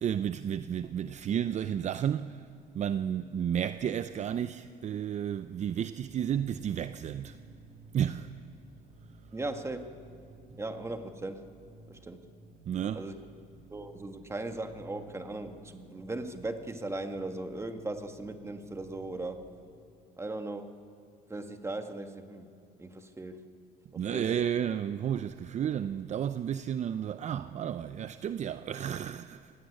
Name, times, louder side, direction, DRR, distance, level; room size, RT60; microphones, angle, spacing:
voice 1, 0.0-2.5 2.7-7.4 7.9-8.3 12.7-13.1 24.0-29.5, right 9 dB, 45° right, 0.6 m, -32 dB
sound 1, 6.0-19.5, right 2 dB, 75° right, 7.6 m, -54 dB
voice 2, 9.3-9.9 10.6-11.5 11.9-12.2 12.9-13.2 13.7-19.4 20.2-20.7 21.3-22.5 22.8-23.4 23.9-24.3, right 2 dB, 15° right, 1.7 m, -38 dB
25.0 x 17.0 x 9.8 m
cardioid pair, 110°, 17 cm